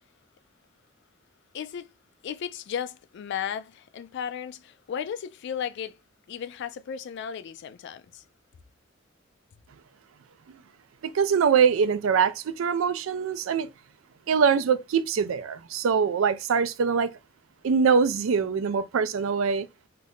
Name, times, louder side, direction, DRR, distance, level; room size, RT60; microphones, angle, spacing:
voice 1, 1.5-1.9 2.2-6.0 6.3-8.2, left 8 dB, 60° left, 0.3 m, -35 dB
voice 2, 11.0-13.7 14.3-17.1 17.6-19.7, right 6 dB, 85° right, 0.4 m, -23 dB
2.6 x 2.4 x 3.4 m
head